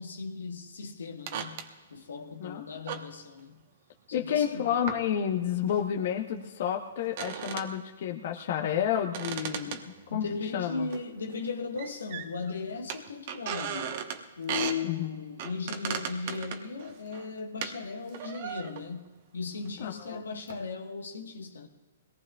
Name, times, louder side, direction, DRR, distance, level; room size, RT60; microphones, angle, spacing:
voice 1, 0.0-3.6 4.1-4.7 10.1-14.0 14.4-19.1 19.3-21.7, left 4 dB, 85° left, 1.4 m, -37 dB
sound 1, 1.3-1.7 2.9-3.1 4.9-5.0 5.7-5.8 7.0-7.7 8.9-10.4 10.9-11.0 11.3-11.4 11.8-12.5 12.9-14.2 14.5-14.8 15.4-17.8 18.1-19.0 19.6-19.8 20.5-20.6, right 8 dB, 50° right, 1.1 m, -37 dB
voice 2, 4.1-9.8 10.1-10.2 10.5-10.9 14.8-15.1 19.8-20.2, left 9 dB, 55° left, 1.1 m, -30 dB
22.0 x 18.0 x 2.4 m
hypercardioid pair, 140°, 0 cm